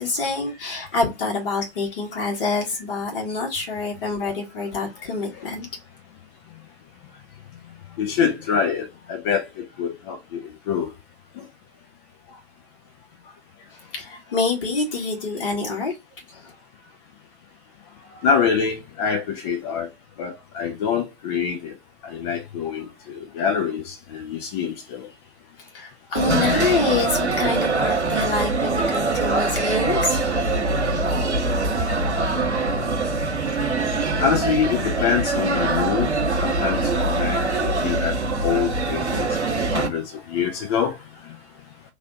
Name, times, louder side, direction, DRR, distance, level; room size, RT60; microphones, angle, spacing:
voice 1, 0.0-5.7 13.9-15.9 16.3-16.5 25.6-30.2, left 3 dB, 55° left, 1.7 m, -26 dB
voice 2, 8.0-10.2 10.7-10.9 18.2-19.9 20.2-21.7 22.1-25.1 34.2-36.1 36.4-40.9, left 7 dB, 25° left, 0.4 m, -25 dB
sound 1, 26.2-39.9, right 3 dB, 90° right, 1.0 m, -23 dB
3.2 x 2.5 x 3.8 m
figure-of-eight pair, 110°, 33 cm